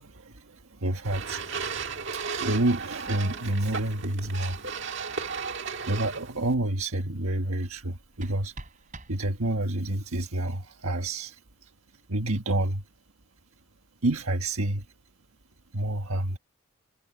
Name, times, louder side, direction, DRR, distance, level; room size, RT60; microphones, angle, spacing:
voice 1, 0.0-1.7 2.1-4.6 5.9-8.5 9.1-11.7 12.1-12.8 14.0-14.9 15.7-16.4, right 1 dB, 75° right, 1.5 m, -29 dB
sound 1, 1.0-6.5, right 5 dB, 55° right, 1.7 m, -35 dB
Bass guitar, 3.1-6.8, left 1 dB, 75° left, 3.9 m, -55 dB
sound 2, 7.8-9.8, right 2 dB, 35° right, 3.3 m, -47 dB
head